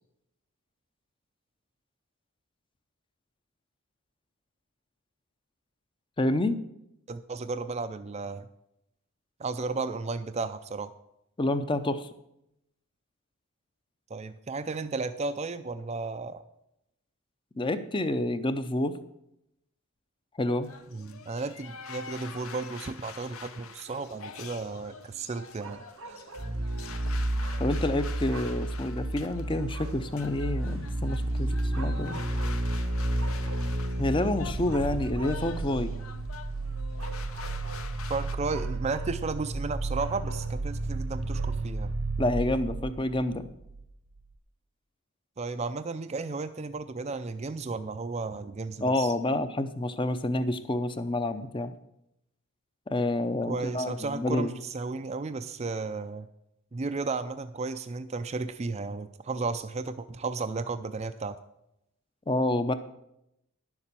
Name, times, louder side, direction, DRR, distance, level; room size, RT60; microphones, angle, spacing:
voice 1, 6.2-6.6 11.4-12.1 17.6-19.0 20.4-20.7 27.6-32.2 34.0-35.9 42.2-43.4 48.8-51.7 52.9-54.5 62.3-62.7, left 1 dB, 20° left, 11 dB, 0.6 m, -28 dB
voice 2, 7.1-8.5 9.4-10.9 14.1-16.4 20.9-25.8 38.1-41.9 45.4-49.1 53.5-56.3 56.7-61.4, right 3 dB, 30° right, 9 dB, 0.4 m, -34 dB
sound 1, 20.6-38.4, left 6 dB, 70° left, 0.9 m, -46 dB
sound 2, 23.9-41.9, right 3 dB, 60° right, 0.7 m, -49 dB
sound 3, 26.4-43.9 44.2-44.3, right 1 dB, 80° right, 1.0 m, -32 dB
10.5 x 7.2 x 6.8 m, 0.81 s
head